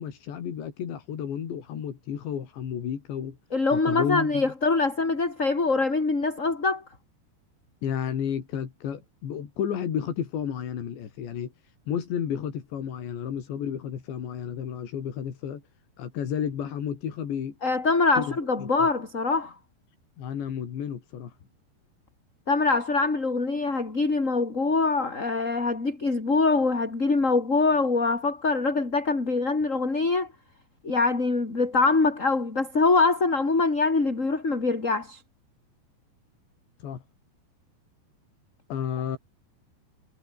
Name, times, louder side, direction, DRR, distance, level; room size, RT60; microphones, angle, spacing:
voice 1, 0.0-3.4 3.7-4.4 7.8-15.6 16.0-17.6 18.2-18.9 20.2-21.3 36.8-37.0 38.7-39.2, left 8 dB, 80° left, 5.6 m, -32 dB
voice 2, 3.5-6.8 17.6-19.6 22.5-30.3 30.8-35.2, left 3 dB, 20° left, 3.8 m, -24 dB
omnidirectional pair, 5.0 m